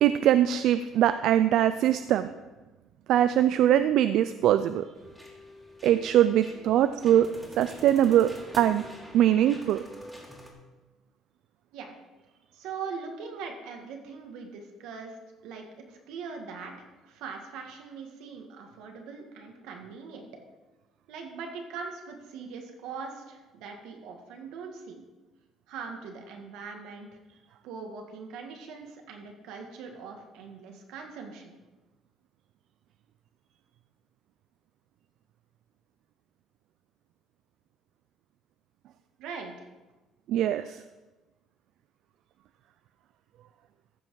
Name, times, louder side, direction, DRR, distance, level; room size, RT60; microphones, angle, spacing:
voice 1, 0.0-2.3 3.1-4.8 5.8-7.3 7.6-8.3 8.5-8.8 9.1-9.8 40.3-40.8, right 11 dB, 65° right, 12 dB, 0.3 m, -22 dB
sound 1, 4.9-10.5, equal, 5° right, 1.9 m, -46 dB
voice 2, 12.5-15.2 15.4-20.3 21.1-25.0 25.7-27.1 27.6-31.5 39.2-39.7, right 5 dB, 85° right, 3 dB, 1.6 m, -41 dB
14.0 x 5.6 x 4.7 m, 1.2 s
cardioid pair, 145°, 0 cm